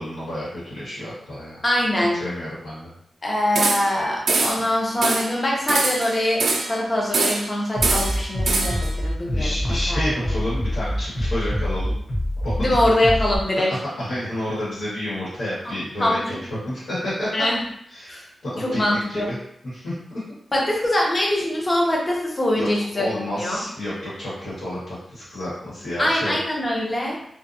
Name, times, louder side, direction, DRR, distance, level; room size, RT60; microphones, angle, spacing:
voice 1, 0.0-1.6 2.2-2.9 9.3-11.9 12.4-12.8 13.7-16.4 16.6-17.4 17.9-18.1 18.4-19.4 19.6-19.9 22.5-22.7 22.9-26.3, left 1 dB, 85° left, -10 dB, 1.3 m, -30 dB
voice 2, 1.6-2.2 3.2-10.3 12.6-13.7 15.6-15.7 16.0-16.2 17.3-17.6 18.1-18.2 18.6-19.3 20.5-23.6 26.0-27.2, left 1 dB, 25° left, -3 dB, 0.5 m, -23 dB
sound 1, 3.6-4.0 4.3-4.7 5.0-5.3 5.7-6.8 7.1-7.5 7.8-8.9, right 3 dB, 70° right, 0.3 m, -23 dB
Bass drum, 7.7-13.4, left 1 dB, 60° left, 0.9 m, -25 dB
2.6 x 2.2 x 2.6 m, 0.72 s
wide cardioid pair, 175°, 0 cm